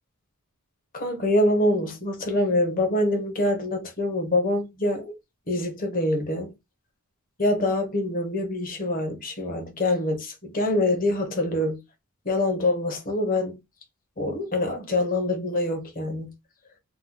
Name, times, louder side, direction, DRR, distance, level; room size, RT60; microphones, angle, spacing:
voice 1, 0.9-5.1 5.5-6.5 7.4-11.8 12.2-13.6 14.2-16.3, left 1 dB, 40° left, 1.0 m, -25 dB
2.9 x 2.3 x 3.8 m
head